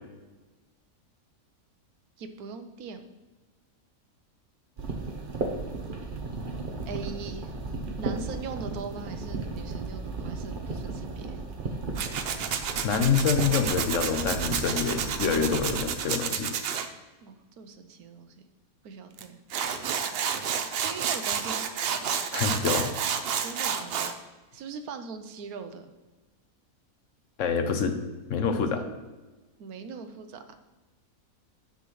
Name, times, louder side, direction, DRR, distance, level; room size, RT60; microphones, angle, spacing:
voice 1, 2.2-3.0 6.9-7.5 8.0-11.4 17.2-18.3 18.8-19.4 20.8-21.7 23.4-24.1 24.5-25.9 29.6-30.4, right 5 dB, 90° right, 8 dB, 1.2 m, -40 dB
sound 1, 4.8-15.8, right 3 dB, 40° right, 0.9 m, -35 dB
Tools, 12.0-16.9 19.2-19.3 19.5-24.1, right 7 dB, 60° right, 0.6 m, -30 dB
voice 2, 12.8-16.5 22.3-22.8 27.4-28.0 28.3-28.8, left 6 dB, 65° left, 7 dB, 1.0 m, -26 dB
9.3 x 6.9 x 3.1 m, 1.2 s
omnidirectional pair, 1.5 m